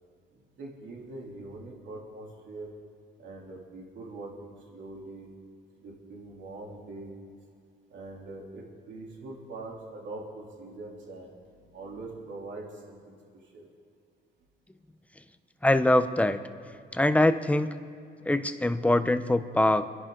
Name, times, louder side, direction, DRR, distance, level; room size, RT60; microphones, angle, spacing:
voice 1, 0.3-2.7 3.2-5.3 5.8-7.1 7.9-13.1 13.5-13.7, right 2 dB, 65° right, -2 dB, 3.4 m, -43 dB
voice 2, 15.6-16.4 16.9-17.7 18.2-19.8, left 1 dB, 5° left, 10 dB, 0.8 m, -23 dB
28.0 x 10.5 x 3.9 m, 2.5 s
cardioid pair, 90°, 20 cm